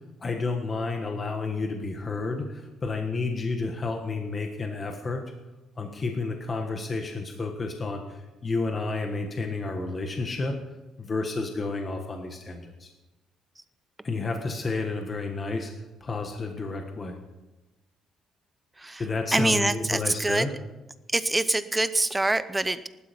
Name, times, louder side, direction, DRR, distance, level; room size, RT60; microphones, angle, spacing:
voice 1, 0.2-5.2 5.8-10.5 11.0-12.9 14.0-15.7 16.0-17.2 19.0-20.5, left 3 dB, 25° left, 3 dB, 1.5 m, -31 dB
voice 2, 19.3-20.5 21.1-22.9, right 2 dB, 10° right, 13 dB, 0.6 m, -25 dB
19.0 x 12.0 x 5.3 m, 1.1 s
cardioid pair, 145°, 0 cm